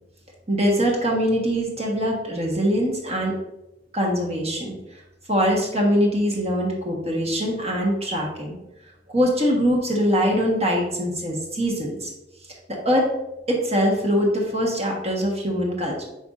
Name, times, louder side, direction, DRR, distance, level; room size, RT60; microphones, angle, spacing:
voice 1, 0.5-3.3 3.9-5.0 5.3-8.5 9.1-12.1 12.8-13.1 13.5-16.0, equal, 35° right, -2 dB, 1.2 m, -23 dB
10.5 x 4.1 x 2.5 m, 0.93 s
head